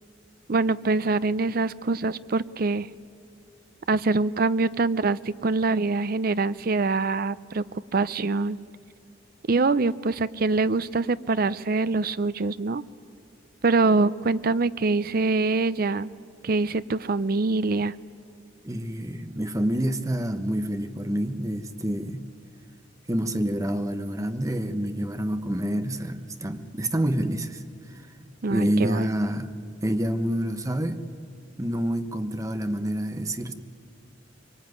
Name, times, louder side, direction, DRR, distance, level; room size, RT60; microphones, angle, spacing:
voice 1, 0.5-2.9 3.9-7.6 7.9-8.6 9.5-12.8 13.6-16.1 16.4-17.9 28.4-29.1, right 3 dB, 50° right, 16 dB, 0.6 m, -24 dB
voice 2, 18.6-22.3 23.1-27.6 28.5-29.5 29.8-31.0 31.6-33.5, right 1 dB, 20° right, 8 dB, 1.1 m, -27 dB
24.0 x 23.5 x 9.5 m, 2.4 s
head